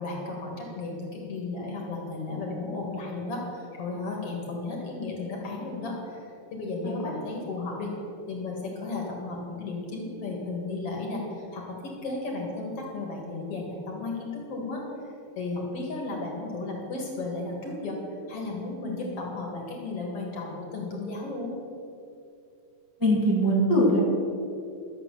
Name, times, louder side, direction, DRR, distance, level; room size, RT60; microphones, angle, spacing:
voice 1, 0.0-6.3 6.5-7.9 8.3-11.8 12.0-14.8 15.4-18.0 18.3-21.6, left 3 dB, 55° left, -1 dB, 2.6 m, -34 dB
voice 2, 23.0-24.0, equal, 10° right, -5 dB, 1.6 m, -22 dB
12.5 x 7.6 x 6.8 m, 2.5 s
omnidirectional pair, 3.5 m